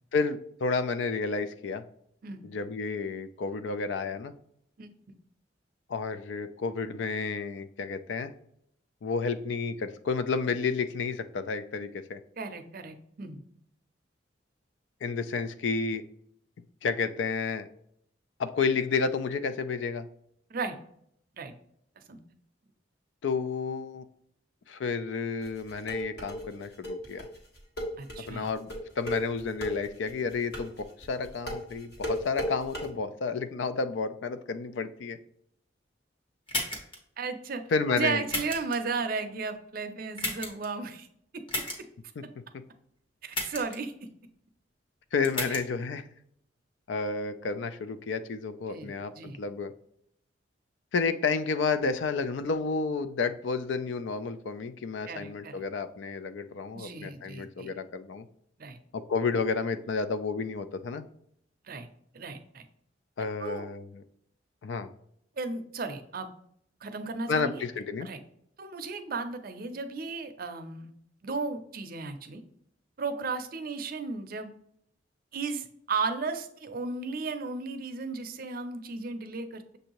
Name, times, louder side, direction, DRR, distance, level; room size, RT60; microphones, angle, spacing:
voice 1, 0.1-1.8 2.4-4.3 5.9-8.3 9.0-12.2 15.0-16.0 16.8-17.7 18.4-20.1 23.2-24.0 24.7-27.3 28.3-28.7 29.0-35.2 37.7-38.2 45.1-46.0 46.9-49.1 49.4-49.7 50.9-58.3 58.9-61.1 63.2-64.0 64.6-64.9 67.3-68.1, left 4 dB, 80° left, 11 dB, 0.4 m, -31 dB
voice 2, 2.2-2.5 4.8-4.9 12.4-13.4 20.5-20.8 21.4-21.5 22.1-22.2 28.0-28.5 37.2-41.1 43.2-43.9 48.7-49.4 55.1-55.6 56.7-57.7 58.6-58.8 61.6-61.9 62.1-62.7 63.4-63.7 65.4-66.3 66.8-67.7 68.0-68.2 68.6-70.9 71.2-72.4 73.0-74.5 75.3-79.8, right 4 dB, 50° right, 8 dB, 0.5 m, -35 dB
sound 1, 25.4-32.9, equal, 60° left, 1.4 m, -35 dB
sound 2, 36.5-37.0 38.3-38.8 40.2-40.7 41.5-41.8 43.3-43.8 45.2-45.6, left 1 dB, 30° left, 1.1 m, -32 dB
6.6 x 2.6 x 2.9 m, 0.70 s
head